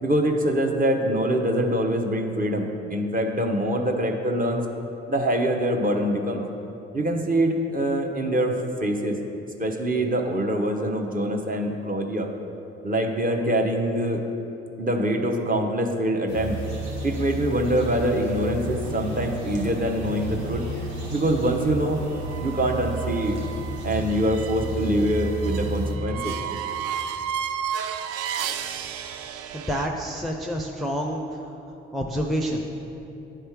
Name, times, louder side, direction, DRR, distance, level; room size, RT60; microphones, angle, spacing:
voice 1, 0.0-4.6 5.1-6.4 6.9-9.2 9.6-12.3 12.8-14.2 14.8-16.6 17.0-20.6 21.1-22.0 22.4-23.4 23.8-26.3, right 1 dB, 25° right, 2 dB, 0.8 m, -24 dB
sound 1, 16.3-26.0, right 2 dB, 90° right, 0.8 m, -32 dB
sound 2, 22.2-29.9, right 8 dB, 50° right, 0.4 m, -33 dB
voice 2, 29.5-31.4 31.9-32.6, equal, ahead, 0 dB, 0.5 m, -28 dB
9.8 x 3.3 x 4.5 m, 2.9 s
hypercardioid pair, 45°, 32 cm